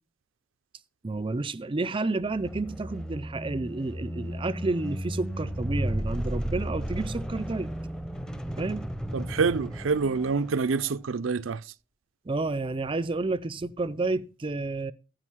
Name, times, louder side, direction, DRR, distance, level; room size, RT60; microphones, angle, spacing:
voice 1, 1.0-7.7 8.6-8.9 12.3-14.9, right 3 dB, 25° right, 0.5 m, -30 dB
sound 1, 2.2-11.0, equal, 5° left, 0.7 m, -34 dB
voice 2, 9.1-11.6, right 4 dB, 75° right, 0.5 m, -26 dB
14.5 x 5.2 x 5.7 m
head